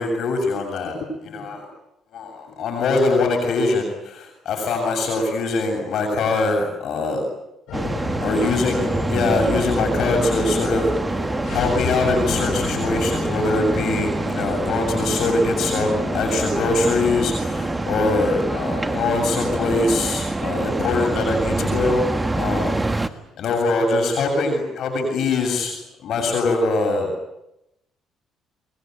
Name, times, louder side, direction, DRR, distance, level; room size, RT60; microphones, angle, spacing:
voice 1, 0.0-1.7 2.1-7.3 8.2-27.1, left 3 dB, 65° left, 3 dB, 7.5 m, -23 dB
sound 1, 7.7-26.1, left 9 dB, 85° left, 3.1 m, -36 dB
sound 2, 7.7-23.1, right 2 dB, 15° right, 1.6 m, -25 dB
25.5 x 22.5 x 9.4 m, 0.85 s
cardioid pair, 105°, 0 cm